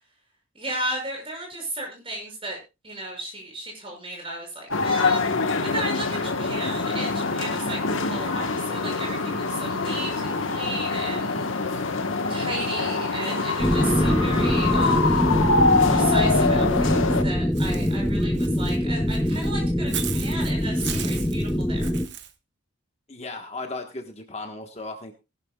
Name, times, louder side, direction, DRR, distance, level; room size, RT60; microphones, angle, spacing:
voice 1, 0.5-2.6 2.8-5.3 5.6-11.5 12.3-15.2 15.9-21.9, right 1 dB, 25° right, 1 dB, 6.3 m, -34 dB
sound 1, 4.7-17.2, left 3 dB, 75° left, 1.4 m, -25 dB
sound 2, 13.6-22.1, equal, 10° left, 0.7 m, -23 dB
Walk footsteps / Bird, 17.5-22.3, right 10 dB, 55° right, 1.2 m, -37 dB
voice 2, 23.1-25.1, left 2 dB, 30° left, 4 dB, 1.4 m, -36 dB
19.5 x 12.0 x 2.4 m, 0.27 s
head